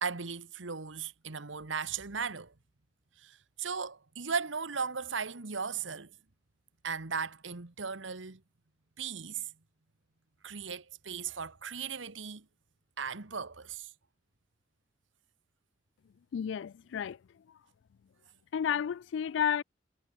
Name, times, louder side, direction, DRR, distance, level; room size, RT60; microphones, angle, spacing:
voice 1, 0.0-2.5 3.2-6.1 6.8-8.4 9.0-9.5 10.4-12.5 13.0-13.9, right 5 dB, 85° right, 1.5 m, -37 dB
voice 2, 16.3-17.4 18.5-19.6, left 8 dB, 70° left, 0.3 m, -32 dB
head